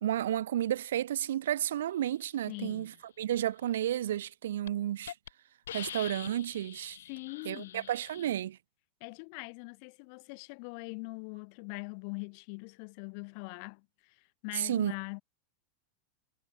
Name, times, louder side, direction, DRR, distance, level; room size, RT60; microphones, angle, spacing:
voice 1, 0.0-2.9 3.2-5.1 5.7-7.0 7.4-8.6 14.5-14.9, right 11 dB, 80° right, 1.1 m, -32 dB
voice 2, 2.5-2.9 7.1-7.9 9.0-14.2 14.4-15.2, left 38 dB, 55° left, 1.9 m, -42 dB
Hiss, 4.1-4.3 4.7-4.8 5.1-5.3 5.7-8.3, left 10 dB, 85° left, 0.4 m, -44 dB
hypercardioid pair, 115°, 0 cm